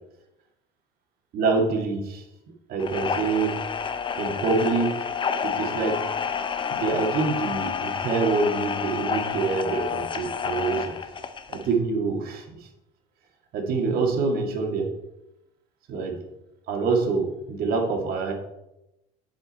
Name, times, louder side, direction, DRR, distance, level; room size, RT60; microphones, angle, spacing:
voice 1, 1.3-3.6 4.2-5.1 5.4-6.1 6.7-11.0 11.5-12.7 13.5-14.9 15.9-16.2 16.7-18.3, right 4 dB, 55° right, 2 dB, 2.1 m, -26 dB
sound 1, 2.8-11.7, left 6 dB, 25° left, 0.7 m, -29 dB
7.6 x 7.4 x 4.2 m, 0.90 s
supercardioid pair, 105°, 18 cm